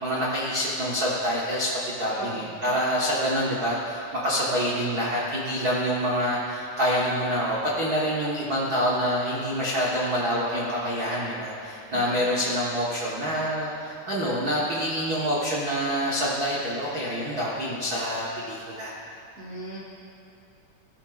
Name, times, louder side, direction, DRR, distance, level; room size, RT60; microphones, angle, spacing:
voice 1, 0.0-18.9, equal, 75° right, -6 dB, 0.8 m, -26 dB
voice 2, 11.9-12.2 19.3-19.8, right 1 dB, 40° right, -6 dB, 0.9 m, -38 dB
15.5 x 12.0 x 2.4 m, 2.8 s
omnidirectional pair, 3.7 m